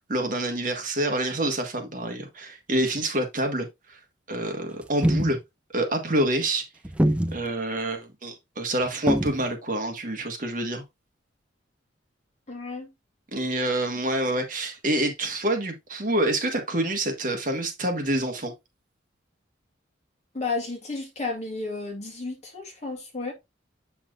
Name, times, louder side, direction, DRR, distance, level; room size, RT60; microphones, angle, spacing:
voice 1, 0.0-4.0 4.3-5.4 5.7-6.7 7.3-10.8 13.3-18.5, right 1 dB, 45° right, 1.4 m, -27 dB
sound 1, 4.8-5.4 6.8-7.5 9.1-9.5, equal, 5° right, 0.5 m, -23 dB
voice 2, 12.5-12.9 20.3-23.3, left 3 dB, 35° left, 2.3 m, -32 dB
7.7 x 5.9 x 2.4 m
head